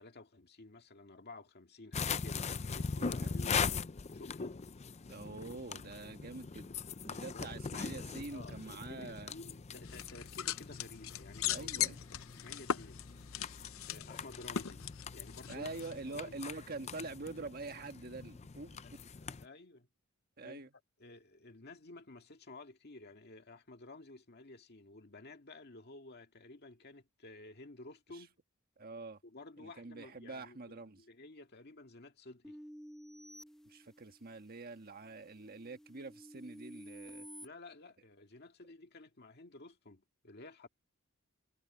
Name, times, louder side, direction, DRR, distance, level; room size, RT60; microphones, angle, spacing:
voice 1, 0.0-3.7 4.1-4.6 7.3-7.5 8.3-12.0 12.4-13.0 13.8-14.8 15.1-16.4 18.8-18.9 19.2-19.9 20.4-20.7 21.0-28.4 29.2-32.6 37.4-40.7, left 2 dB, 50° left, 1.9 m, -53 dB
sound 1, 1.9-19.4, left 5 dB, 30° left, 0.5 m, -41 dB
voice 2, 2.8-3.4 5.1-9.3 11.5-12.0 15.5-18.8 20.4-20.7 28.1-28.2 28.8-29.2 29.6-31.0 33.6-37.3, right 3 dB, 45° right, 1.5 m, -46 dB
Joint Squeaks, 9.8-16.1, left 10 dB, 75° left, 0.7 m, -40 dB
sound 2, 32.4-34.4 34.9-37.5, equal, 5° left, 1.3 m, -52 dB
head